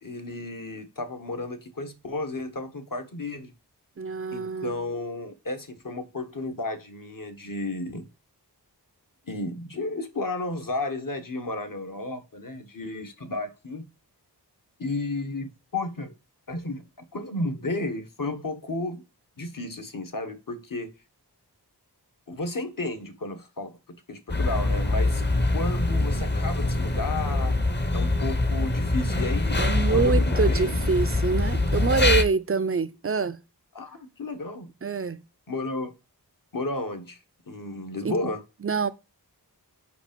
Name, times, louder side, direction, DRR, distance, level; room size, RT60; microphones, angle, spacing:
voice 1, 0.0-3.5 4.3-8.1 9.3-13.8 14.8-16.1 16.5-16.8 17.1-19.0 19.4-20.9 22.3-23.8 24.1-25.2 25.5-27.6 27.9-29.6 29.9-30.7 33.7-34.7 35.5-35.9 36.5-37.2 37.5-38.4, left 2 dB, 50° left, 1.3 m, -33 dB
voice 2, 4.0-4.7 29.6-33.4 34.8-35.2 38.0-38.1 38.6-38.9, right 5 dB, 35° right, 0.5 m, -26 dB
sound 1, 24.3-32.2, left 2 dB, 25° left, 0.9 m, -24 dB
5.1 x 5.0 x 5.1 m
wide cardioid pair, 40°, 41 cm